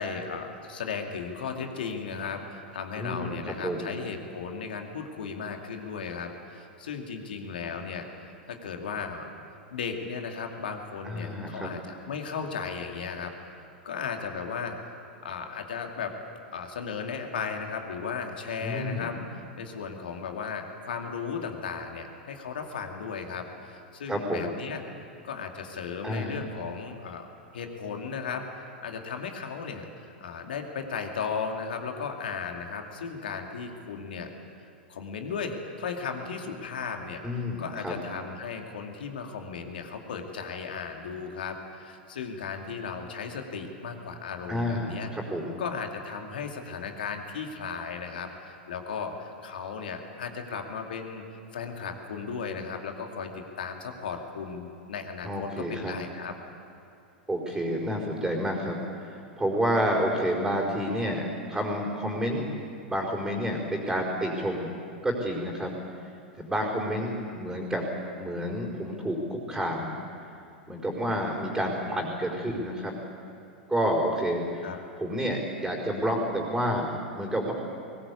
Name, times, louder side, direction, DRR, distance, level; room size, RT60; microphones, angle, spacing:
voice 1, 0.0-9.3 9.7-13.3 13.8-14.8 15.2-16.1 16.5-24.8 25.2-27.3 27.5-34.3 34.9-45.1 45.6-51.2 51.5-53.3 53.6-56.3 71.9-72.0 74.6-74.8, left 5 dB, 70° left, 4 dB, 2.5 m, -36 dB
voice 2, 2.9-3.9 11.0-11.7 18.6-19.1 24.1-24.4 26.0-26.4 37.2-37.9 44.5-45.6 55.2-55.9 57.3-62.5 62.9-64.7 65.0-65.7 66.4-67.9 68.2-70.0 70.7-72.9 73.7-74.7 75.0-77.5, equal, 5° right, -4 dB, 4.7 m, -29 dB
21.5 x 19.5 x 8.4 m, 2.5 s
figure-of-eight pair, 95°, 5 cm